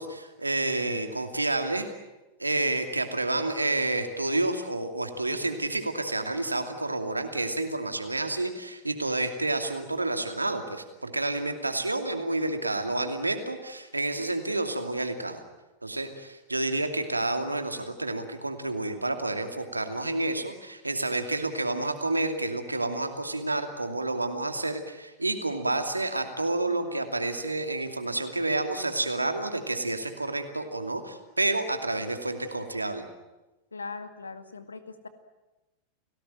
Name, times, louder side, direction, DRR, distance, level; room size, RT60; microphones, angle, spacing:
voice 1, 0.0-1.9 2.4-15.4 15.8-33.0, right 2 dB, 85° right, 7 dB, 2.6 m, -29 dB
voice 2, 33.7-35.1, left 4 dB, 75° left, 10 dB, 2.1 m, -40 dB
30.0 x 18.5 x 9.1 m, 1.1 s
figure-of-eight pair, 90°, 0 cm